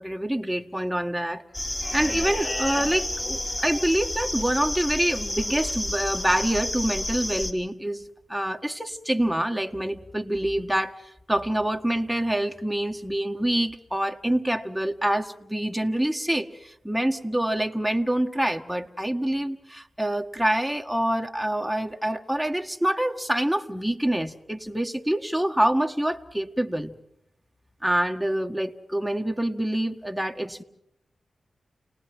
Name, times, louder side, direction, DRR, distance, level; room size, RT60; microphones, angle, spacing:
voice 1, 0.0-1.4 1.9-8.0 8.3-11.0 11.3-26.9 27.8-30.6, right 1 dB, ahead, 4 dB, 1.6 m, -26 dB
sound 1, 1.5-7.5, left 1 dB, 30° left, 3.4 m, -30 dB
29.5 x 19.0 x 6.1 m, 0.79 s
cardioid pair, 50°, 0 cm